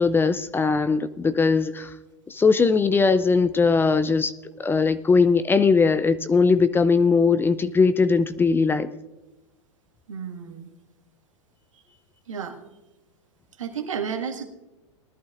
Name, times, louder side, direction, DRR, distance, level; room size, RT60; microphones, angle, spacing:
voice 1, 0.0-1.9 2.3-4.3 4.6-8.9, left 4 dB, 15° left, 14 dB, 0.5 m, -20 dB
voice 2, 10.1-10.7 12.3-12.6 13.6-14.4, right 7 dB, 80° right, 3 dB, 1.8 m, -32 dB
20.0 x 11.5 x 2.5 m, 1.1 s
hypercardioid pair, 105°, 16 cm